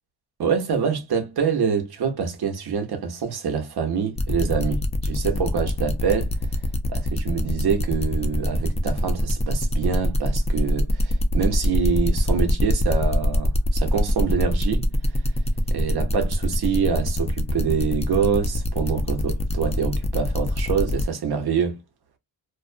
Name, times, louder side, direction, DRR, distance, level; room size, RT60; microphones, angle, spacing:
voice 1, 0.4-6.3 6.9-14.9 15.7-21.8, right 6 dB, 55° right, 0.9 m, -25 dB
sound 1, 4.2-21.0, left 1 dB, 15° left, 0.4 m, -25 dB
2.4 x 2.2 x 2.4 m
cardioid pair, 110°, 45 cm